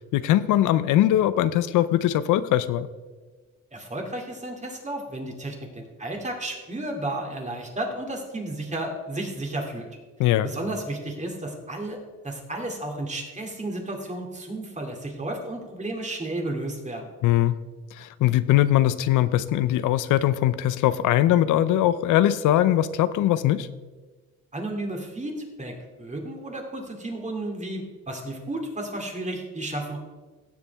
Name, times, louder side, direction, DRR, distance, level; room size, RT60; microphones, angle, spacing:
voice 1, 0.1-2.9 10.2-10.5 17.2-17.6 18.0-23.7, left 13 dB, 85° left, 14 dB, 0.6 m, -21 dB
voice 2, 3.7-9.9 10.2-12.0 12.2-17.1 24.5-30.0, right 1 dB, 25° right, 1 dB, 2.5 m, -33 dB
16.5 x 7.1 x 3.5 m, 1.3 s
cardioid pair, 90°, 30 cm